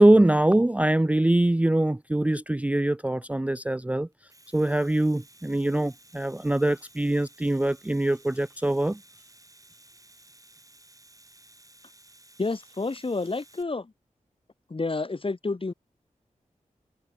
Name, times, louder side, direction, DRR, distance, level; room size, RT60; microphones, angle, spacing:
voice 1, 0.0-4.1 4.5-9.0, right 1 dB, 10° right, 0.4 m, -23 dB
Domestic sounds home sounds, 4.1-13.6, right 1 dB, 25° right, 5.9 m, -55 dB
voice 2, 12.4-13.9 14.7-15.7, left 3 dB, 40° left, 1.4 m, -29 dB
cardioid pair, 40°, 14 cm